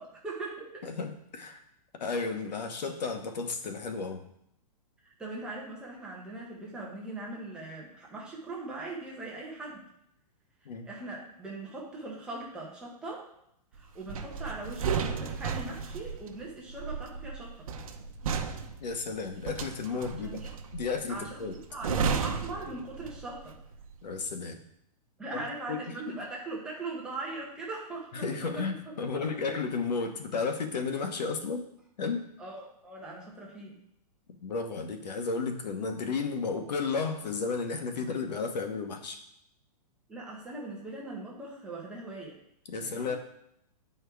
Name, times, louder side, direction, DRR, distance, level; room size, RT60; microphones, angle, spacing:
voice 1, 0.0-0.9 5.0-9.9 10.6-13.3 13.7-17.7 20.2-20.5 21.1-23.6 25.2-28.6 29.1-29.6 32.4-33.8 40.1-42.4 42.8-43.2, right 2 dB, 5° right, -4 dB, 0.6 m, -40 dB
voice 2, 0.8-1.6 2.0-4.2 10.6-10.9 18.8-20.4 20.7-21.6 24.0-24.6 25.3-25.4 25.7-25.8 26.1-26.2 28.1-31.7 32.0-32.2 34.4-39.2 42.7-43.2, left 4 dB, 85° left, 6 dB, 1.2 m, -33 dB
sound 1, 14.1-23.4 23.7-24.0, right 6 dB, 55° right, 0.8 m, -34 dB
9.5 x 4.5 x 3.4 m, 0.75 s
hypercardioid pair, 180°, 21 cm